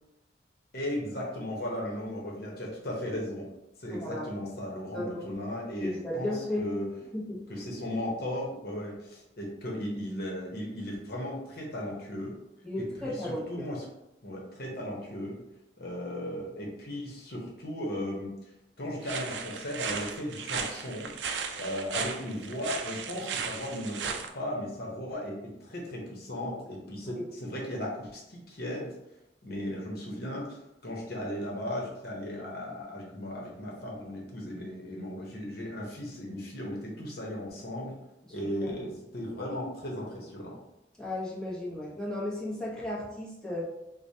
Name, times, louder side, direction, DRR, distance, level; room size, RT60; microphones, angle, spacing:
voice 1, 0.7-3.5 3.8-6.9 7.5-12.4 12.8-13.8 14.2-15.4 15.8-18.4 18.8-21.1 21.5-28.9 29.4-38.0 38.3-40.6, left 1 dB, 60° left, -2 dB, 0.9 m, -36 dB
voice 2, 3.9-4.3 4.9-5.2 5.8-6.7 7.1-7.7 12.6-13.7 27.1-27.2 38.6-38.7 41.0-43.6, left 1 dB, 5° left, -7 dB, 0.9 m, -34 dB
sound 1, 19.0-24.3, right 6 dB, 80° right, 0.4 m, -36 dB
4.8 x 2.1 x 2.7 m, 0.90 s
head